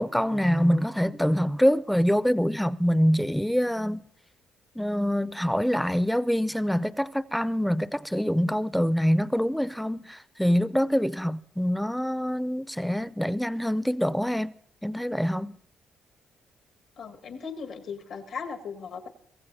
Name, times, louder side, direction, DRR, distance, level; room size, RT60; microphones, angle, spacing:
voice 1, 0.0-4.1 4.8-14.5 14.8-15.6, equal, ahead, 0.4 m, -25 dB
voice 2, 17.0-19.1, left 5 dB, 75° left, 1.6 m, -37 dB
23.0 x 15.5 x 2.7 m
cardioid pair, 90°, 0 cm